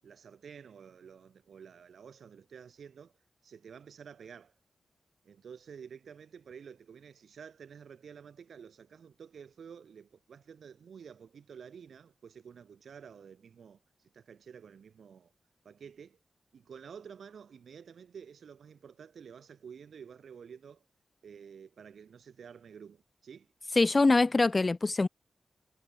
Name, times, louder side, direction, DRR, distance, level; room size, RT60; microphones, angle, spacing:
voice 1, 0.0-3.1 3.4-4.5 5.2-13.8 14.1-15.3 15.6-16.2 16.5-20.8 21.2-23.5, right 7 dB, 80° right, 7.6 m, -50 dB
voice 2, 23.8-25.1, left 3 dB, 35° left, 0.4 m, -24 dB
cardioid pair, 85°, 0 cm